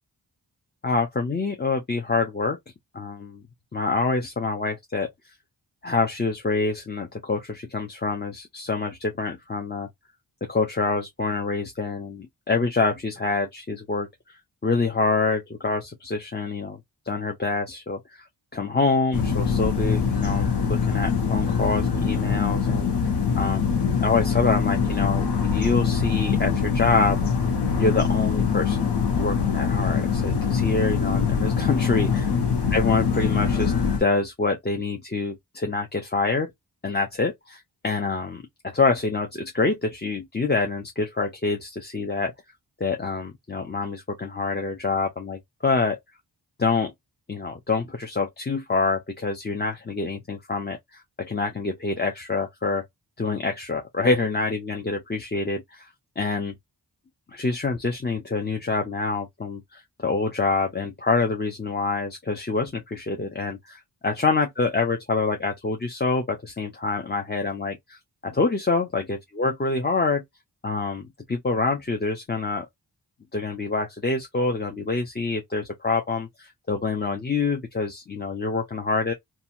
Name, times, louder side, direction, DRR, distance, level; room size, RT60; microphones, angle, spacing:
voice 1, 0.8-2.6 2.9-3.4 3.7-5.1 5.8-9.9 10.5-16.8 17.1-18.2 18.5-23.7 24.0-27.2 27.8-32.4 32.7-33.7 34.0-36.5 36.8-42.3 42.8-46.0 46.6-46.9 47.3-52.8 53.2-55.9 56.2-56.5 57.3-70.2 70.6-72.7 73.3-79.1, left 3 dB, 25° left, 0.6 m, -26 dB
sound 1, 19.1-34.0, left 6 dB, 65° left, 1.0 m, -23 dB
2.8 x 2.3 x 2.5 m
wide cardioid pair, 60°, 43 cm